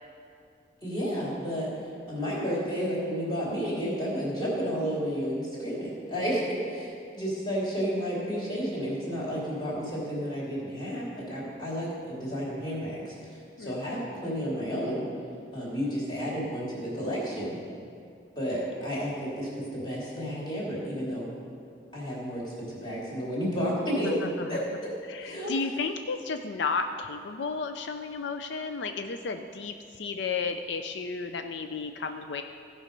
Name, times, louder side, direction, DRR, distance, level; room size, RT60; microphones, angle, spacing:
voice 1, 0.8-1.7 2.1-15.1 15.5-17.6 18.4-21.3 21.9-24.2 24.5-24.9 25.2-25.5, equal, 25° left, -6 dB, 2.9 m, -31 dB
voice 2, 25.1-32.4, left 4 dB, 85° left, 7 dB, 0.5 m, -33 dB
15.5 x 5.5 x 5.2 m, 2.4 s
head